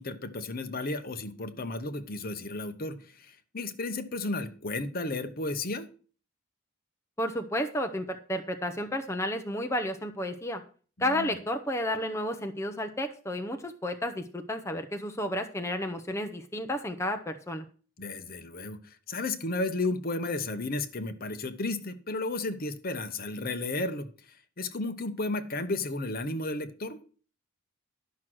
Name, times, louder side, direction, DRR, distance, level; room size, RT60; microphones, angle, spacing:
voice 1, 0.0-5.9 11.0-11.3 18.0-24.1 24.6-27.0, left 2 dB, 45° left, 10 dB, 1.0 m, -33 dB
voice 2, 7.2-10.6 11.0-17.6, left 1 dB, 15° left, 5 dB, 0.8 m, -32 dB
11.5 x 6.2 x 6.2 m, 0.41 s
head